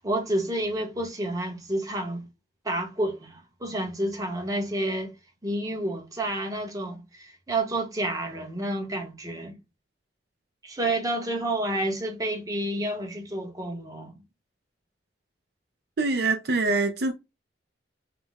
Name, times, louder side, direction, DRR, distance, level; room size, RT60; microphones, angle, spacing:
voice 1, 0.0-2.3 2.6-5.1 5.4-9.5 10.6-14.2, right 1 dB, 20° right, 0.9 m, -29 dB
voice 2, 16.0-17.1, right 3 dB, 55° right, 0.5 m, -24 dB
5.9 x 2.0 x 3.4 m
head